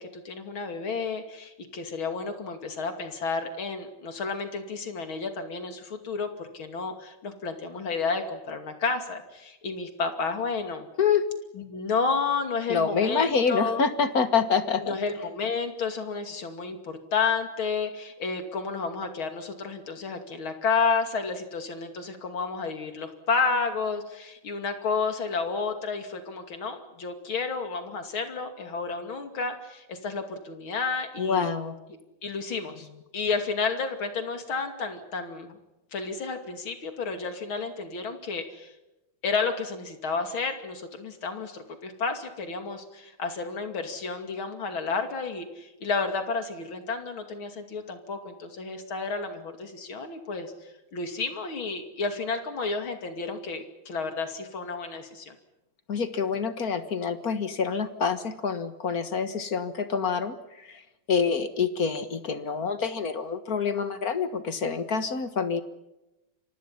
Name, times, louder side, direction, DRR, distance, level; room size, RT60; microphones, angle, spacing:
voice 1, 0.0-10.9 11.5-13.8 14.8-31.5 32.2-32.9 33.1-35.6 35.9-38.7 39.2-55.4, left 4 dB, 80° left, 7 dB, 3.4 m, -31 dB
voice 2, 12.7-14.9 31.2-31.7 55.9-60.8 61.1-65.6, left 6 dB, 50° left, 11 dB, 1.9 m, -27 dB
29.0 x 25.0 x 5.8 m, 0.96 s
omnidirectional pair, 2.2 m